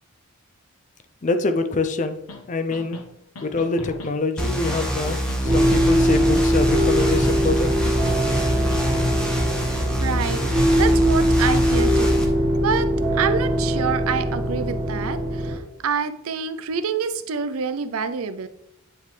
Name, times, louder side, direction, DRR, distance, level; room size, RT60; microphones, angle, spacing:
voice 1, 1.2-2.1 2.5-3.0 3.4-5.2 5.4-7.7 11.4-11.6, left 3 dB, 35° left, 8 dB, 0.4 m, -25 dB
sound 1, 2.3-2.4 2.7-3.0 3.4-4.1 4.4-4.8 5.1-5.8 6.1-6.5 6.8-7.5 7.9-8.2 8.5-9.1, left 2 dB, 85° left, 0.9 m, -36 dB
sound 2, 4.4-12.2, equal, 5° left, 0.9 m, -25 dB
sound 3, 5.4-15.5, equal, 60° right, 1.9 m, -21 dB
voice 2, 10.0-12.3 12.6-18.5, right 6 dB, 75° right, 12 dB, 0.5 m, -27 dB
9.3 x 3.7 x 3.2 m, 0.77 s
head